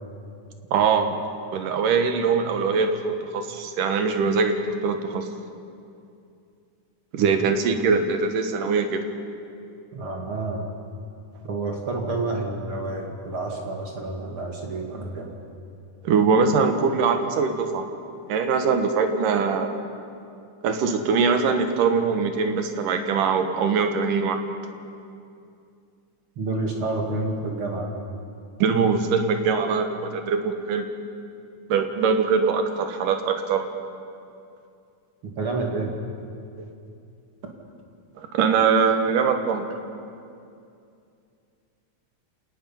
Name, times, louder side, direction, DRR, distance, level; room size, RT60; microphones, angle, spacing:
voice 1, 0.7-1.2 1.5-5.3 7.1-9.0 16.0-17.8 18.3-19.7 20.6-24.4 28.6-30.9 31.7-33.7 38.2-39.6, right 5 dB, 85° right, 6 dB, 3.0 m, -22 dB
voice 2, 9.9-10.7 11.4-15.3 26.4-27.9 35.2-35.9, right 2 dB, 45° right, 0 dB, 2.6 m, -29 dB
29.0 x 18.5 x 5.7 m, 2.5 s
omnidirectional pair, 3.7 m